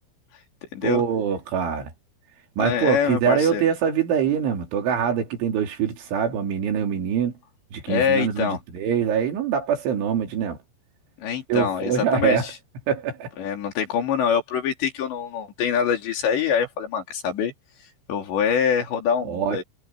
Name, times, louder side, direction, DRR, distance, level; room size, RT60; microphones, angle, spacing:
voice 1, 0.8-1.9 2.6-7.3 7.7-10.6 11.5-12.5 12.9-13.3 19.3-19.6, right 7 dB, 90° right, 5.9 m, -24 dB
voice 2, 2.6-3.7 7.9-8.6 11.2-12.6 13.4-17.5 18.1-19.6, left 7 dB, 70° left, 5.4 m, -24 dB
omnidirectional pair, 5.3 m